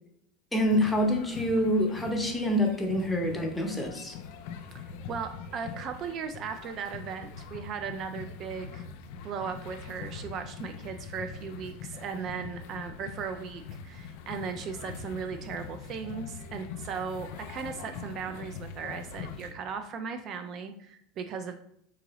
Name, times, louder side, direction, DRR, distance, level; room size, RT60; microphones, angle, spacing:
sound 1, 0.5-19.5, left 6 dB, 70° left, 0.4 m, -43 dB
voice 1, 0.5-4.2, equal, 5° left, 2 dB, 0.8 m, -26 dB
voice 2, 4.6-8.9 9.2-21.6, right 6 dB, 45° right, 7 dB, 0.3 m, -37 dB
3.8 x 2.6 x 3.0 m, 0.74 s
supercardioid pair, 105°, 0 cm